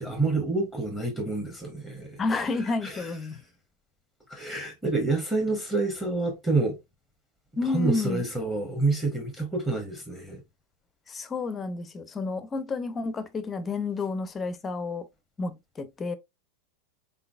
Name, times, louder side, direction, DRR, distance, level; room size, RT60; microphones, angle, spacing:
voice 1, 0.0-2.2 2.8-3.1 4.3-6.8 7.6-10.4, right 3 dB, 5° right, 1.1 m, -28 dB
voice 2, 2.2-3.4 7.6-8.2 11.1-15.1 15.4-16.1, left 3 dB, 20° left, 0.6 m, -30 dB
3.8 x 3.8 x 2.3 m
figure-of-eight pair, 90°, 0 cm